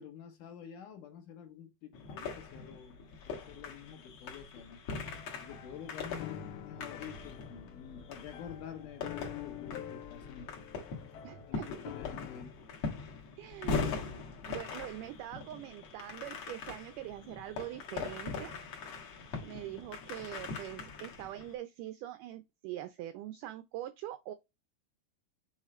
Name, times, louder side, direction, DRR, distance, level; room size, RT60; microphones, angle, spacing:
voice 1, 0.0-3.0 3.2-4.8 5.4-10.5 11.4-12.6, left 8 dB, 65° left, 2.3 m, -48 dB
sound 1, 1.9-21.5, left 4 dB, 50° left, 2.2 m, -41 dB
sound 2, 5.0-12.4, left 10 dB, 80° left, 2.7 m, -47 dB
voice 2, 11.2-11.7 13.4-18.5 19.4-24.3, right 13 dB, 90° right, 1.8 m, -43 dB
7.3 x 3.5 x 4.2 m
omnidirectional pair, 4.4 m